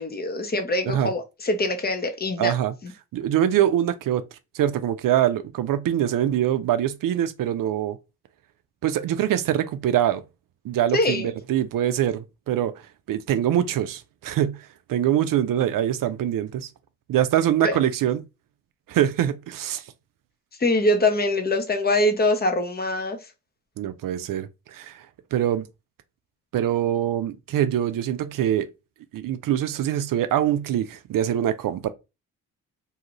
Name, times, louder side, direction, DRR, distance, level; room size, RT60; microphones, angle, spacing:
voice 1, 0.0-2.5 2.8-2.9 10.9-11.3 17.6-17.8 20.6-23.2, left 1 dB, 25° left, 0.8 m, -23 dB
voice 2, 2.4-2.7 3.1-4.2 4.5-8.0 8.8-10.2 10.6-12.7 13.1-16.7 17.1-18.2 18.9-19.8 23.8-25.0 25.3-25.6 26.5-28.7 29.1-31.9, right 11 dB, 60° right, 0.5 m, -24 dB
2.8 x 2.4 x 3.0 m
supercardioid pair, 50°, 37 cm